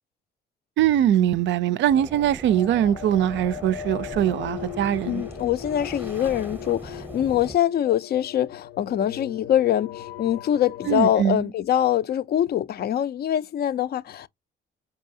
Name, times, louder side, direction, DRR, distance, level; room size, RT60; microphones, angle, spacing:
voice 1, 0.8-5.2 10.9-11.5, right 11 dB, 70° right, 0.4 m, -22 dB
sound 1, 1.9-7.6, right 1 dB, 10° right, 0.7 m, -40 dB
sound 2, 2.5-11.2, left 11 dB, 75° left, 0.7 m, -39 dB
voice 2, 5.1-14.3, left 11 dB, 55° left, 0.4 m, -24 dB
4.7 x 2.7 x 2.6 m
cardioid pair, 90°, 20 cm